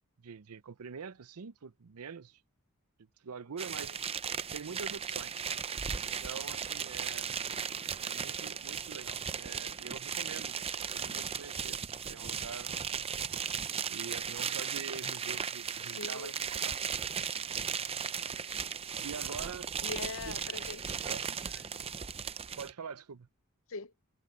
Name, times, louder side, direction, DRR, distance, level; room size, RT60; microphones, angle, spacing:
voice 1, 0.2-2.4 3.2-4.0 4.5-5.5 6.0-7.3 8.0-11.8 12.0-13.3 13.9-16.7 19.0-19.8 20.2-20.4 21.0-21.3 22.6-23.3, right 6 dB, 80° right, 0.6 m, -45 dB
sound 1, 3.6-22.7, right 7 dB, 25° right, 0.6 m, -36 dB
voice 2, 16.0-16.3 19.8-21.1 21.5-21.8 23.7-23.9, left 4 dB, 65° left, 0.7 m, -42 dB
head